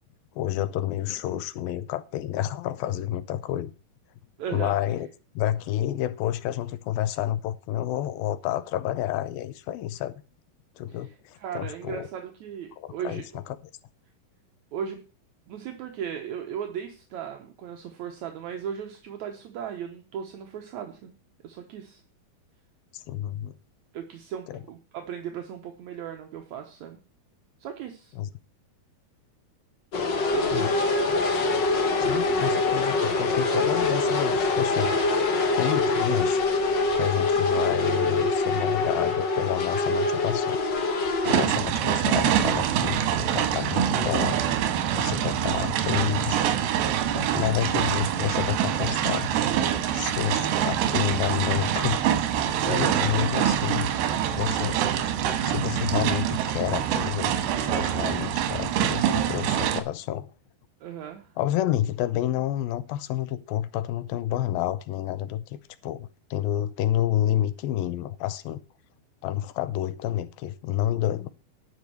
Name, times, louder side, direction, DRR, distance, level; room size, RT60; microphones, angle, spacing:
voice 1, 0.4-3.7 4.5-5.1 5.4-10.2 10.8-12.1 12.8-13.6 22.9-23.6 24.5-24.6 28.2-28.3 30.5-30.7 32.0-35.2 35.6-36.4 36.9-40.6 41.2-44.4 45.0-46.5 47.1-49.3 49.9-52.0 52.6-53.9 54.3-54.8 55.2-57.3 57.6-60.3 61.4-68.6 69.2-71.3, left 12 dB, 80° left, 2.4 m, -29 dB
voice 2, 4.4-4.8 10.9-13.2 14.7-15.0 15.5-21.1 21.4-22.0 23.9-27.0 27.6-28.1 30.2-30.7 47.2-47.6 52.6-53.2 60.8-61.3, right 8 dB, 65° right, 1.9 m, -37 dB
sound 1, 29.9-41.4, left 3 dB, 55° left, 1.2 m, -24 dB
sound 2, 41.2-59.8, right 10 dB, 85° right, 3.0 m, -25 dB
12.0 x 5.3 x 7.7 m
omnidirectional pair, 4.5 m